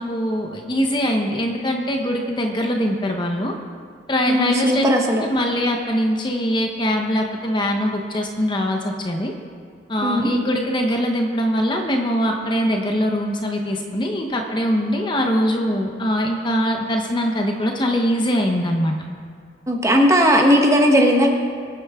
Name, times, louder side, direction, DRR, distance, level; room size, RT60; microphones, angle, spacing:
voice 1, 0.0-3.5 4.1-4.8 5.2-9.3 9.9-19.0, equal, 25° left, 2 dB, 1.0 m, -22 dB
voice 2, 4.3-5.2 10.0-10.3 19.7-21.3, equal, 15° right, 1 dB, 1.3 m, -16 dB
23.5 x 9.2 x 3.7 m, 2.1 s
head